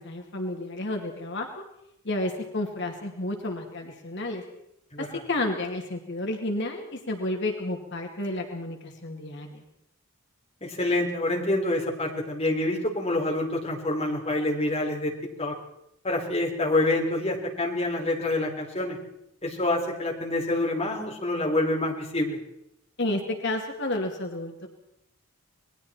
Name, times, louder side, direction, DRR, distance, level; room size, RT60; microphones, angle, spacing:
voice 1, 0.0-1.5 2.0-4.4 5.0-9.6 23.0-24.7, left 2 dB, 55° left, 2 dB, 2.5 m, -31 dB
voice 2, 10.6-15.1 15.4-15.5 16.0-19.0 19.4-22.4, left 2 dB, 25° left, -1 dB, 3.9 m, -27 dB
27.5 x 21.0 x 4.4 m, 0.79 s
head